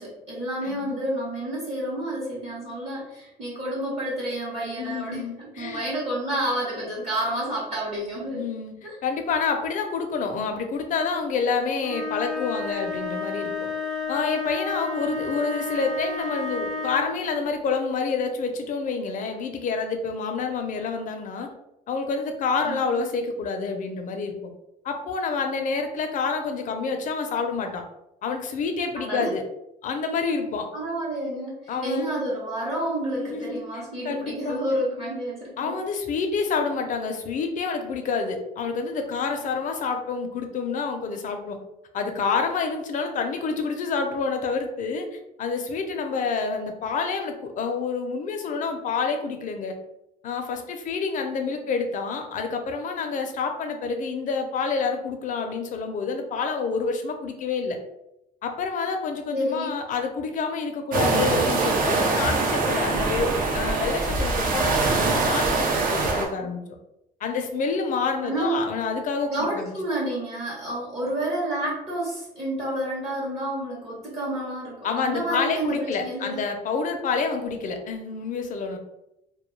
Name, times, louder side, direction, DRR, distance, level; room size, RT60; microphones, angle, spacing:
voice 1, 0.0-8.4 8.8-9.0 22.6-23.0 29.0-29.3 30.7-35.8 59.3-59.7 68.2-68.6 69.3-76.4, right 1 dB, 40° right, -5 dB, 0.9 m, -29 dB
voice 2, 0.6-1.0 4.8-5.8 8.3-8.7 9.0-13.7 14.1-21.5 21.9-24.3 24.8-27.8 28.2-29.4 29.8-30.7 31.7-32.1 33.1-34.6 35.6-41.6 41.9-49.8 50.2-57.8 58.4-66.6 67.2-69.8 74.8-78.8, left 5 dB, 50° left, 5 dB, 0.5 m, -28 dB
sound 1, 11.8-17.3, left 3 dB, ahead, 0.6 m, -31 dB
sound 2, 60.9-66.3, right 3 dB, 55° right, 0.6 m, -23 dB
2.2 x 2.2 x 3.1 m, 0.85 s
cardioid pair, 110°, 17 cm